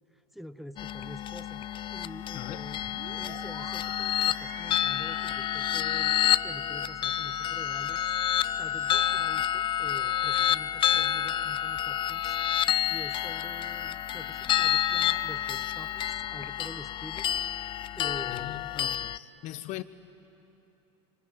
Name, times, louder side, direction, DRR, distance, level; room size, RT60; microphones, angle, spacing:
voice 1, 0.1-2.8 3.1-8.1 8.6-12.3 12.9-17.3 17.9-18.6, equal, ahead, 9 dB, 0.7 m, -46 dB
sound 1, 0.8-19.2, left 11 dB, 35° left, 0.5 m, -29 dB
voice 2, 2.3-2.6 18.3-19.8, left 15 dB, 50° left, 13 dB, 1.0 m, -40 dB
sound 2, 2.8-16.1, right 6 dB, 60° right, 3.4 m, -50 dB
26.0 x 24.5 x 8.9 m, 2.9 s
supercardioid pair, 120°, 15 cm